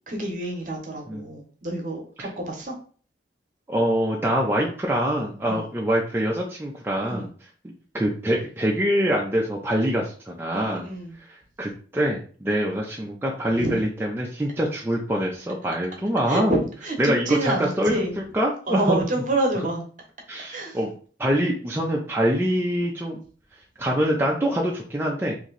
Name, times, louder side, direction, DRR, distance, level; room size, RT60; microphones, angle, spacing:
voice 1, 0.1-2.7 5.4-5.7 7.0-7.3 10.5-11.2 13.6-13.8 16.3-18.1 18.7-19.8 20.5-20.8, right 2 dB, 45° right, 2 dB, 0.9 m, -28 dB
voice 2, 3.7-7.3 7.9-10.8 11.3-16.6 17.0-19.0 20.3-20.9 21.2-23.2 23.8-25.3, equal, 10° right, -2 dB, 0.4 m, -24 dB
3.0 x 2.5 x 3.8 m, 0.42 s
head